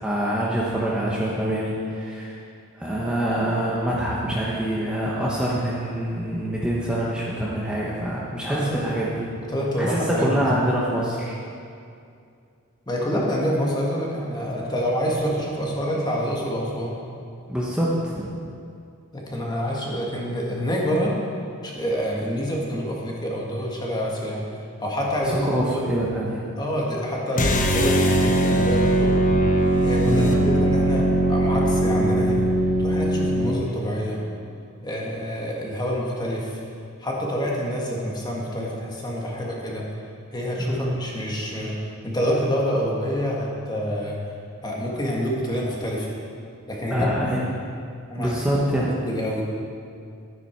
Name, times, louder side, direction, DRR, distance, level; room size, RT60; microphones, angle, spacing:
voice 1, 0.0-2.4 2.7-9.3 9.8-11.3 17.5-18.3 25.2-26.4 30.1-30.5 33.4-33.6 40.6-40.9 46.9-47.4 48.2-48.9, right 1 dB, 5° right, -6 dB, 1.1 m, -25 dB
voice 2, 8.5-8.9 9.4-10.5 12.9-17.0 19.1-21.2 21.6-24.5 24.8-25.9 26.6-29.1 29.8-32.5 32.8-34.2 34.8-36.6 37.0-39.9 40.3-44.2 44.6-46.1 46.7-47.5 48.1-48.3 48.8-49.4, equal, 20° left, -3 dB, 1.8 m, -27 dB
sound 1, 27.3-33.6, right 1 dB, 35° left, 1.0 m, -20 dB
12.0 x 9.8 x 4.7 m, 2.4 s
head